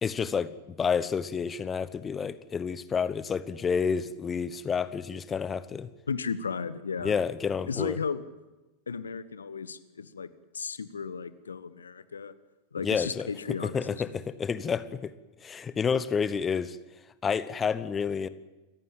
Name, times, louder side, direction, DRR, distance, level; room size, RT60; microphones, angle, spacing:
voice 1, 0.0-0.5 0.8-5.9 7.0-8.0 12.8-15.1 15.4-16.8 17.2-18.3, left 6 dB, 20° left, 15 dB, 1.0 m, -29 dB
voice 2, 6.1-7.2 7.7-8.2 8.9-10.3 10.5-12.3 12.7-14.1, left 5 dB, 70° left, 15 dB, 1.1 m, -34 dB
27.0 x 15.0 x 9.0 m, 1.1 s
figure-of-eight pair, 90°, 0 cm